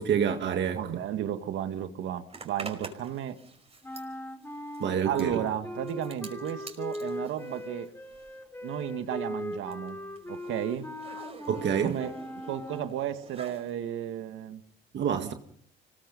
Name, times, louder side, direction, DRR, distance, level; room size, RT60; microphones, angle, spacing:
voice 1, 0.0-0.8 4.8-5.4 11.5-12.0 14.9-15.3, right 8 dB, 65° right, 1.9 m, -27 dB
voice 2, 0.8-3.4 5.0-7.9 8.6-10.0 10.3-10.9 11.8-12.2 12.5-14.6 15.2-15.3, right 10 dB, 85° right, 2.0 m, -33 dB
Zipper (clothing), 2.3-8.5 8.7-13.7, right 3 dB, 30° right, 5.2 m, -48 dB
sound 1, 3.8-13.0, left 1 dB, 10° left, 4.0 m, -39 dB
25.5 x 21.0 x 5.4 m
cardioid pair, 90°, 20 cm